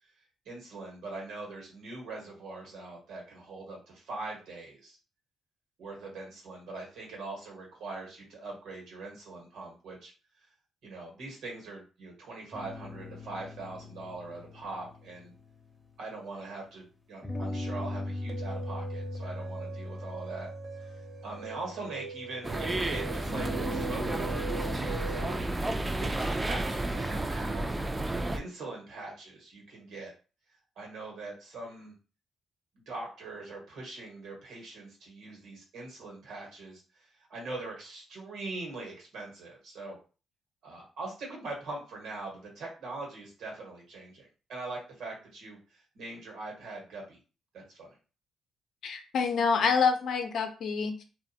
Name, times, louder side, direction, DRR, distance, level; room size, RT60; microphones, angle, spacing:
voice 1, 0.4-5.0 5.8-10.1 10.4-10.5 10.8-15.3 16.0-20.5 20.8-25.5 26.0-27.8 28.3-30.1 30.7-31.9 32.9-40.0 40.6-47.2 47.5-48.0, right 3 dB, 80° right, 0 dB, 1.3 m, -42 dB
sound 1, 12.5-16.4 17.2-22.3 23.3-27.5, left 1 dB, 20° left, 0.6 m, -41 dB
sound 2, 18.3-25.5, right 5 dB, 55° right, 0.8 m, -43 dB
sound 3, 22.4-28.4, right 2 dB, 20° right, 0.3 m, -31 dB
voice 2, 48.8-51.0, left 5 dB, 70° left, 6 dB, 0.5 m, -27 dB
2.5 x 2.4 x 2.7 m, 0.35 s
cardioid pair, 80°, 0 cm